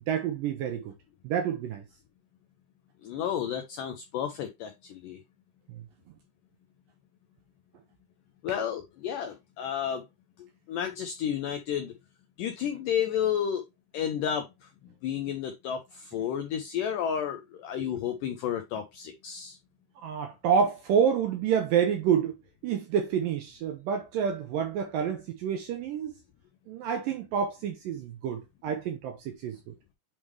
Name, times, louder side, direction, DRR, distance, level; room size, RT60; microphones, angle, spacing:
voice 1, 0.1-0.9 1.2-1.8 20.0-22.4 22.6-26.1 26.7-29.7, right 7 dB, 80° right, 2.0 m, -28 dB
voice 2, 3.0-5.2 8.4-10.0 10.7-11.9 12.4-13.6 13.9-14.5 15.0-19.6, left 9 dB, 85° left, 1.9 m, -31 dB
8.5 x 3.5 x 3.1 m
omnidirectional pair, 4.8 m